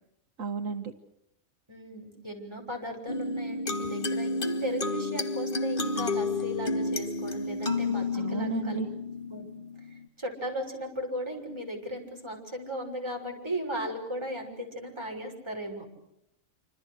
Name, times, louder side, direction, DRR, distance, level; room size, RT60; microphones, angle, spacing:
voice 1, 0.4-0.9 8.1-8.9, right 5 dB, 70° right, 6 dB, 1.8 m, -32 dB
voice 2, 1.7-8.8 9.3-9.5 10.2-15.9, equal, 20° right, 1 dB, 6.4 m, -36 dB
sound 1, 3.1-10.1, left 3 dB, 40° left, 2.0 m, -31 dB
28.0 x 26.0 x 6.6 m, 0.81 s
omnidirectional pair, 1.4 m